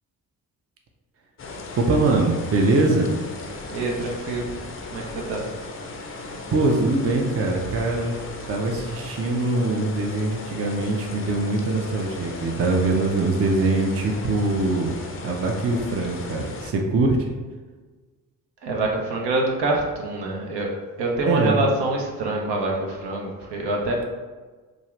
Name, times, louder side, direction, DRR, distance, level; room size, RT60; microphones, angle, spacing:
sound 1, 1.4-16.7, left 3 dB, 30° left, 0.5 m, -37 dB
voice 1, 1.8-3.1 6.5-8.2 8.5-14.9 15.2-17.3 21.3-21.6, right 2 dB, 30° right, 1 dB, 0.5 m, -22 dB
voice 2, 3.7-4.5 4.9-5.5 6.0-6.2 18.6-20.7 21.0-24.1, right 2 dB, 65° right, -1 dB, 0.7 m, -26 dB
2.6 x 2.4 x 3.1 m, 1.3 s
hypercardioid pair, 40°, 45 cm